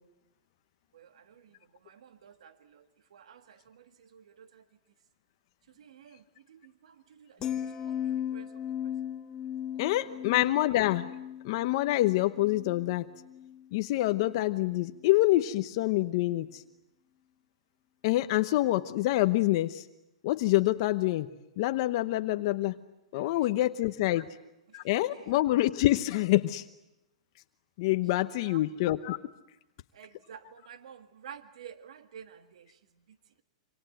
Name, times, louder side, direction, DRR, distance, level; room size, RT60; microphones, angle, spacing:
voice 1, 0.9-4.7 5.7-9.0 9.7-10.2 10.6-10.7 23.1-23.7 24.1-24.3 24.7-25.4 28.2-28.6 29.9-33.4, right 8 dB, 70° right, 10 dB, 1.7 m, -52 dB
sound 1, 7.4-13.7 14.0-14.4, left 10 dB, 20° left, 1.9 m, -37 dB
voice 2, 9.8-11.1 11.4-13.1 13.7-16.6 18.0-19.9 20.2-21.3 21.6-22.8 23.1-24.3 24.7-26.6 27.8-29.2, left 16 dB, 45° left, 10 dB, 1.0 m, -26 dB
27.5 x 26.0 x 7.9 m, 0.92 s
hypercardioid pair, 155°, 4 cm